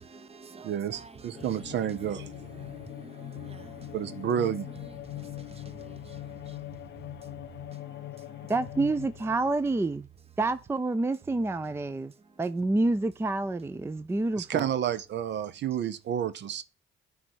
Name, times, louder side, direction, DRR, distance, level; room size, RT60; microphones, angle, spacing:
voice 1, 0.0-8.8 9.6-9.7 10.1-10.4 11.0-12.8 13.9-14.1, right 5 dB, 30° right, 0.9 m, -50 dB
voice 2, 0.6-2.3 3.9-4.7 14.4-16.6, right 9 dB, 65° right, 0.6 m, -30 dB
sound 1, 1.3-9.5, left 15 dB, 60° left, 0.4 m, -42 dB
voice 3, 8.5-10.1 10.4-12.1 12.4-14.7, right 2 dB, 10° right, 0.4 m, -28 dB
9.5 x 3.4 x 4.5 m
cardioid pair, 90°, 20 cm